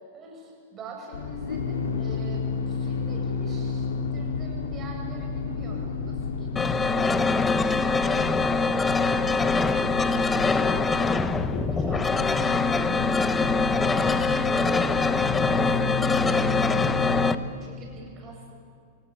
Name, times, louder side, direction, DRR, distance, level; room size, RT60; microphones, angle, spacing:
voice 1, 0.1-8.8 9.2-11.4 11.7-13.3 13.9-17.3 17.6-18.5, right 2 dB, 30° right, 1 dB, 8.0 m, -43 dB
sound 1, 1.1-17.3, left 5 dB, 85° left, 2.8 m, -31 dB
sound 2, 6.6-17.4, left 4 dB, 15° left, 0.9 m, -24 dB
28.5 x 18.0 x 8.3 m, 2.3 s
hypercardioid pair, 120°, 0 cm